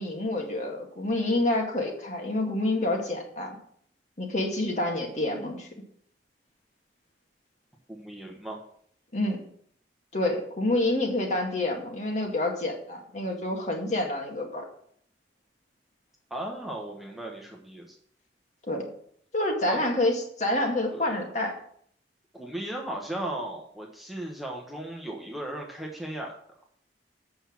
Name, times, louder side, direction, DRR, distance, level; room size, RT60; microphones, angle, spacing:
voice 1, 0.0-3.5 4.2-5.7 9.1-9.4 10.1-14.6 18.7-18.9 19.3-21.6, left 1 dB, 40° left, 1 dB, 2.0 m, -28 dB
voice 2, 7.9-8.6 16.3-17.9 19.7-19.8 20.9-21.2 22.3-26.3, right 1 dB, ahead, -1 dB, 1.2 m, -36 dB
8.2 x 5.8 x 7.2 m, 0.63 s
head